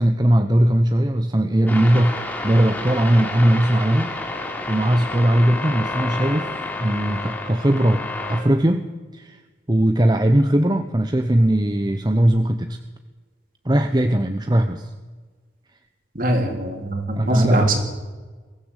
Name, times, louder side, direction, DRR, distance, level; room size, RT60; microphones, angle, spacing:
voice 1, 0.0-4.2 4.7-6.5 6.8-8.0 8.3-9.4 9.7-12.8 13.6-14.9 17.2-17.7, right 1 dB, 20° right, 7 dB, 0.9 m, -19 dB
sound 1, 1.7-8.4, left 2 dB, 10° left, 3.6 m, -30 dB
voice 2, 16.2-17.8, right 1 dB, 50° right, 4 dB, 3.7 m, -21 dB
22.5 x 15.5 x 8.3 m, 1.3 s
head